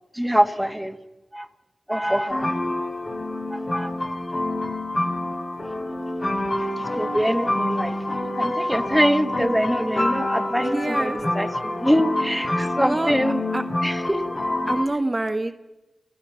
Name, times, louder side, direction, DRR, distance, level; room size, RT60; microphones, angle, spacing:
voice 1, 0.1-1.0 1.3-1.5 1.9-2.5 3.5-3.9 6.8-13.4 13.8-14.2, equal, ahead, 6 dB, 1.7 m, -24 dB
sound 1, 2.3-14.8, left 1 dB, 50° left, 3.8 m, -27 dB
voice 2, 10.6-11.2 12.5-13.1 13.5-13.6 14.7-15.6, right 2 dB, 30° right, 7 dB, 1.4 m, -26 dB
30.0 x 16.5 x 5.8 m, 1.0 s
cardioid pair, 50°, 0 cm